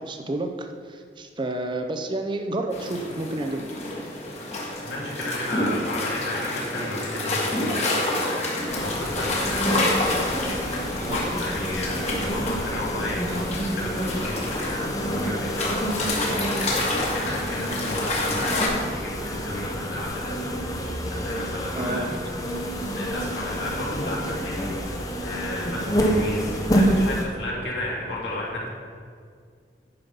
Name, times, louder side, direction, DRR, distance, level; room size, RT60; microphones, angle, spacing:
voice 1, 0.0-3.8 11.0-11.3 21.8-22.2, right 2 dB, 25° right, 5 dB, 0.6 m, -30 dB
sound 1, 2.7-18.7, left 2 dB, 40° left, 1.6 m, -29 dB
voice 2, 4.8-9.6 10.9-16.5 17.1-22.2 22.9-28.7, left 1 dB, 75° left, -4 dB, 2.4 m, -33 dB
sound 2, 8.7-27.2, equal, 20° left, 0.8 m, -28 dB
9.6 x 5.6 x 5.4 m, 2.1 s
head